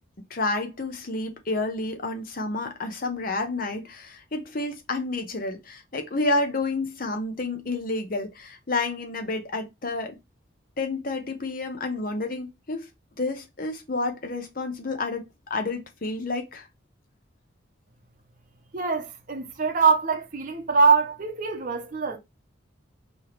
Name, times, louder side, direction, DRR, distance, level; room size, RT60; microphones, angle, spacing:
voice 1, 0.3-10.2 10.8-12.9 13.2-16.7, left 2 dB, 45° left, 0.9 m, -30 dB
voice 2, 18.7-22.2, right 5 dB, 40° right, 0.8 m, -23 dB
4.5 x 3.0 x 3.1 m
head